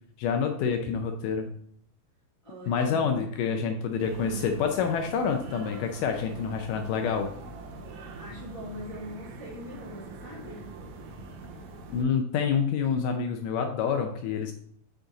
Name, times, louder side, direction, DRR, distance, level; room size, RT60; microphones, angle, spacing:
voice 1, 0.2-1.5 2.7-7.3 11.9-14.5, left 6 dB, 85° left, 5 dB, 1.9 m, -27 dB
voice 2, 2.4-3.2 8.2-10.6, left 1 dB, 15° left, -6 dB, 1.3 m, -42 dB
sound 1, 4.0-12.0, right 3 dB, 80° right, 1.6 m, -43 dB
7.3 x 5.2 x 3.8 m, 0.65 s
omnidirectional pair, 4.4 m